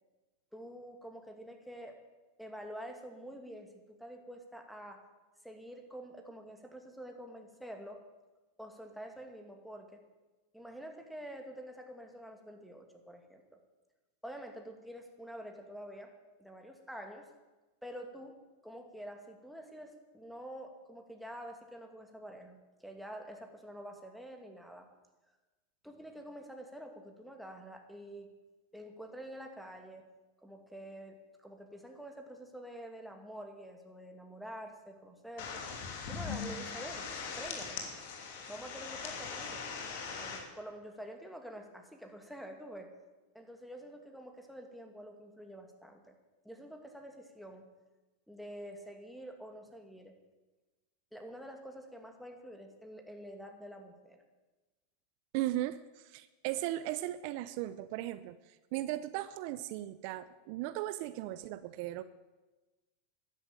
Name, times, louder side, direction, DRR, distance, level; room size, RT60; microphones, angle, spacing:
voice 1, 0.5-2.0 2.4-5.1 5.4-8.0 8.6-10.0 10.5-13.4 14.2-16.1 16.4-17.3 17.8-18.3 18.6-24.9 25.8-28.3 28.7-30.1 30.4-35.6 36.1-37.1 37.4-37.8 38.5-39.7 40.2-42.9 43.3-46.1 46.4-47.7 48.3-50.1 51.1-54.2, equal, ahead, 3 dB, 2.4 m, -47 dB
sound 1, 35.4-40.4, left 5 dB, 65° left, 3.4 m, -40 dB
voice 2, 55.3-62.0, right 15 dB, 55° right, 14 dB, 0.7 m, -37 dB
12.5 x 11.0 x 9.1 m, 1.2 s
hypercardioid pair, 115°, 0 cm